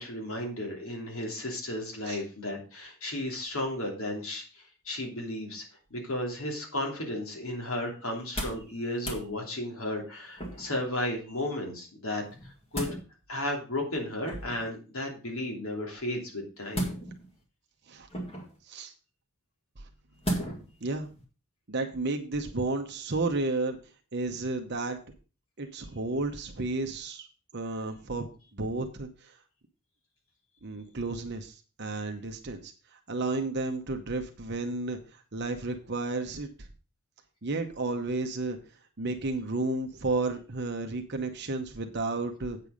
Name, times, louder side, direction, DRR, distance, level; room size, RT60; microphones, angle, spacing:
voice 1, 0.0-5.6 5.9-12.9 13.3-16.8, left 1 dB, 70° left, 1 dB, 3.1 m, -34 dB
sound 1, 8.1-8.7 9.0-9.2 10.4-10.8 12.3-13.0 14.2-14.7 16.7-17.3 18.1-18.6 20.2-20.7 21.2-21.3, right 1 dB, 25° left, 2.0 m, -34 dB
voice 2, 21.7-23.8 24.1-25.0 25.6-27.3 27.5-29.3 30.6-36.5 37.4-38.6 39.0-42.6, right 2 dB, 50° right, 4 dB, 0.9 m, -32 dB
8.4 x 6.8 x 5.1 m, 0.35 s
head